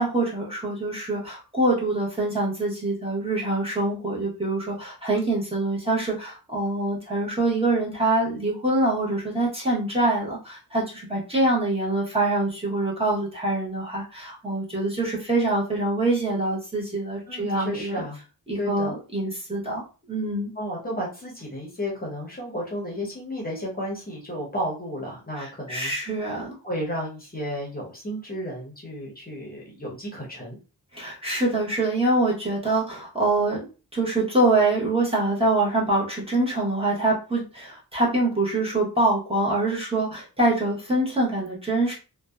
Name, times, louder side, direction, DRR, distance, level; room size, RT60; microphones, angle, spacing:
voice 1, 0.0-18.0 18.5-20.5 25.4-26.6 30.9-33.7 33.9-41.9, right 2 dB, 15° right, -5 dB, 0.9 m, -25 dB
voice 2, 17.3-18.2 18.6-18.9 20.6-25.9 26.6-30.6, equal, 25° left, -3 dB, 0.8 m, -32 dB
2.5 x 2.1 x 2.3 m, 0.34 s
wide cardioid pair, 120°, 37 cm